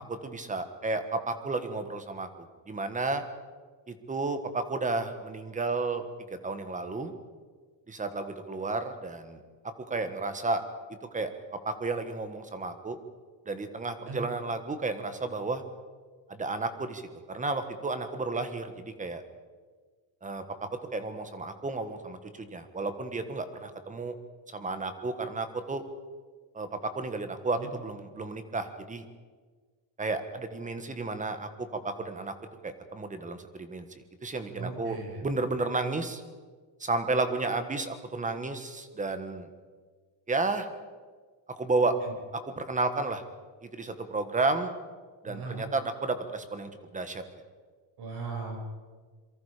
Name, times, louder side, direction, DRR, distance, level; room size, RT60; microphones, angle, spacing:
voice 1, 0.1-3.2 3.9-7.1 7.9-9.4 9.8-10.6 11.1-11.3 11.6-13.0 13.4-15.6 16.3-17.0 17.3-19.2 20.2-24.1 24.5-25.8 26.5-29.0 30.0-32.3 32.6-33.9 34.2-36.2 36.8-39.5 40.3-40.7 41.5-41.9 42.3-43.2 43.6-44.7 45.2-47.2, right 3 dB, 15° right, 9 dB, 1.6 m, -32 dB
voice 2, 34.6-35.2 42.0-42.1 45.3-45.6 48.0-48.6, right 4 dB, 60° right, 1 dB, 6.9 m, -37 dB
27.0 x 23.5 x 5.1 m, 1.5 s
cardioid pair, 175°, 44 cm